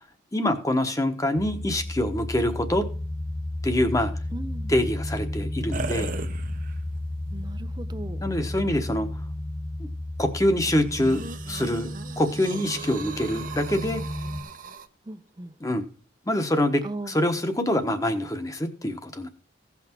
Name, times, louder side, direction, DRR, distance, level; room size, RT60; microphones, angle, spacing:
voice 1, 0.3-2.9 3.6-4.1 4.7-6.1 8.2-9.1 9.8-9.9 10.2-11.2 11.5-11.9 12.2-14.0 15.6-15.8 16.3-19.3, left 1 dB, 15° left, 7 dB, 1.1 m, -25 dB
sound 1, 1.4-14.4, left 1 dB, 85° left, 2.1 m, -33 dB
voice 2, 4.3-4.7 7.3-8.2 15.1-15.5 16.8-17.1, right 2 dB, 20° right, 14 dB, 0.5 m, -37 dB
sound 2, 5.7-7.0 7.6-7.7 10.9-14.9, right 3 dB, 40° right, 0.8 m, -37 dB
16.5 x 5.9 x 4.5 m, 0.39 s
head